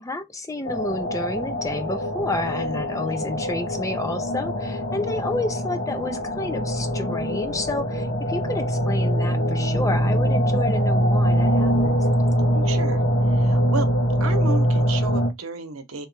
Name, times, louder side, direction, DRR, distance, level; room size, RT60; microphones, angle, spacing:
voice 1, 0.0-12.1, left 2 dB, 15° left, 0.5 m, -30 dB
sound 1, 0.6-15.3, equal, 60° left, 1.3 m, -23 dB
voice 2, 12.5-13.0 13.3-13.9 14.2-16.1, right 3 dB, 75° right, 0.9 m, -32 dB
3.2 x 3.0 x 4.6 m
head